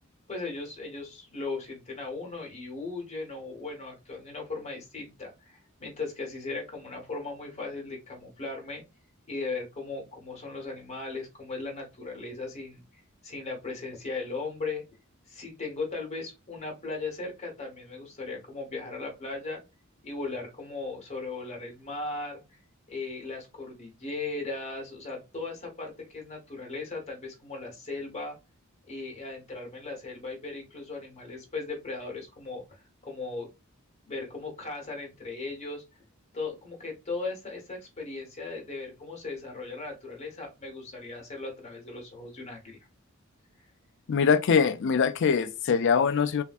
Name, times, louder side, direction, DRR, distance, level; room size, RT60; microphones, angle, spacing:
voice 1, 0.3-8.8 9.3-14.8 15.3-19.6 20.0-22.4 22.9-28.4 28.9-33.5 34.0-35.8 36.3-42.8, left 3 dB, 30° left, 1.4 m, -37 dB
voice 2, 44.1-46.4, left 6 dB, 60° left, 0.4 m, -23 dB
3.3 x 2.5 x 2.4 m
head